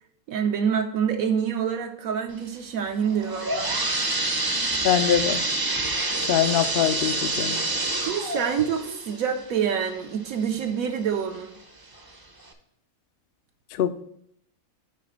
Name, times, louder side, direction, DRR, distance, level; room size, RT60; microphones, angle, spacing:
voice 1, 0.3-3.8 8.0-11.5, right 7 dB, 75° right, 4 dB, 1.0 m, -26 dB
sound 1, 3.0-10.7 11.1-11.2 12.0-12.1 12.5-12.6, right 2 dB, 25° right, 0.5 m, -27 dB
voice 2, 4.8-5.4 6.3-7.6 13.8-14.0, left 10 dB, 70° left, 11 dB, 0.5 m, -23 dB
7.8 x 3.3 x 6.3 m, 0.73 s
omnidirectional pair, 1.5 m